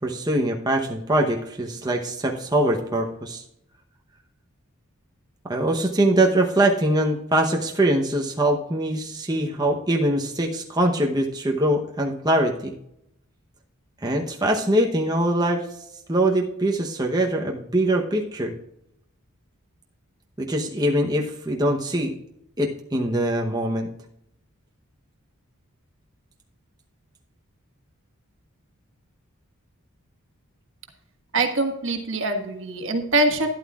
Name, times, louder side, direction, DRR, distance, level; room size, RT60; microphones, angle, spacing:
voice 1, 0.0-3.4 5.4-12.7 14.0-15.8 16.1-18.5 20.4-22.1 22.6-23.9, right 1 dB, 20° right, 0 dB, 0.9 m, -23 dB
voice 2, 31.3-33.5, right 2 dB, 60° right, 5 dB, 1.5 m, -23 dB
12.0 x 11.0 x 2.4 m, 0.76 s
head